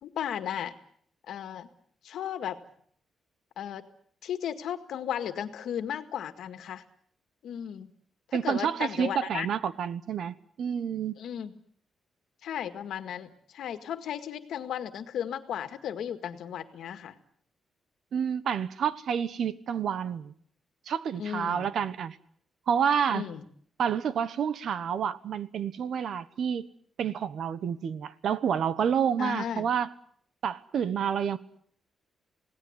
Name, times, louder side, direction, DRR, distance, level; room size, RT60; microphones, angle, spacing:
voice 1, 0.0-0.7 1.3-1.7 2.0-2.6 3.6-3.8 4.2-6.8 7.4-7.9 8.3-9.5 11.2-11.5 12.4-17.2 21.2-21.7 23.1-23.4 29.2-29.7, left 9 dB, 85° left, 9 dB, 1.9 m, -35 dB
voice 2, 8.3-11.2 18.1-20.3 20.9-22.2 22.7-23.2 23.8-26.7 27.0-29.9 30.4-31.4, right 8 dB, 60° right, 15 dB, 1.1 m, -29 dB
27.5 x 18.0 x 8.1 m, 0.63 s
wide cardioid pair, 170°, 0 cm